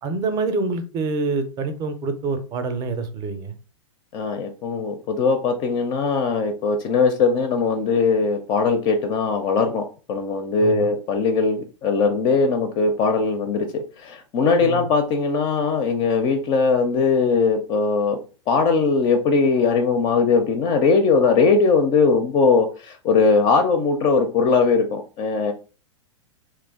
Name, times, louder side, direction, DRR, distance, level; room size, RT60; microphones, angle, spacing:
voice 1, 0.0-3.5 10.6-10.9 14.6-14.9, right 3 dB, 25° right, 9 dB, 0.6 m, -26 dB
voice 2, 4.1-18.2 18.5-25.5, left 4 dB, 30° left, 6 dB, 0.4 m, -20 dB
3.0 x 2.3 x 3.5 m, 0.35 s
figure-of-eight pair, 105°, 16 cm